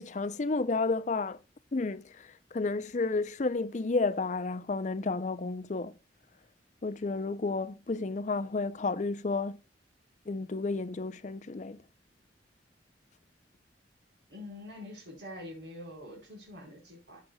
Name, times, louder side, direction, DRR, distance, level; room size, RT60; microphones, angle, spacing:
voice 1, 0.0-1.4 1.7-5.9 6.8-9.6 10.3-11.8, left 3 dB, 40° left, 0.5 m, -31 dB
voice 2, 14.3-17.2, left 1 dB, 75° right, 4.5 m, -45 dB
14.0 x 6.2 x 2.3 m
head